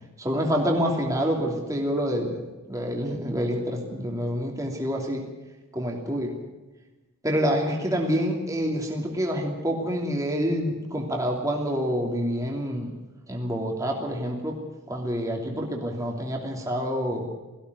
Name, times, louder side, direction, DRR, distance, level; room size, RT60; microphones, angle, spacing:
voice 1, 0.2-2.4 2.7-5.2 5.7-6.3 7.2-12.9 13.3-14.6 14.9-17.3, equal, 15° right, 0 dB, 2.9 m, -27 dB
18.0 x 16.0 x 9.6 m, 1.2 s
head